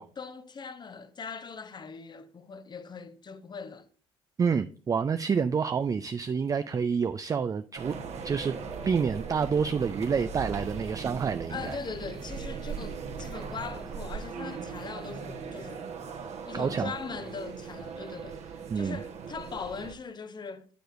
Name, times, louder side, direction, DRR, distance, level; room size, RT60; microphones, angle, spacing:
voice 1, 0.0-3.9 11.5-16.0 16.2-20.7, left 5 dB, 30° left, 0.7 m, -41 dB
voice 2, 4.4-7.9 8.2-8.6 8.9-11.8 16.5-16.9 18.7-19.0, right 6 dB, 25° right, 0.3 m, -28 dB
sound 1, 7.8-19.9, right 5 dB, 50° right, 1.1 m, -39 dB
7.7 x 6.8 x 2.5 m
hypercardioid pair, 55°, 14 cm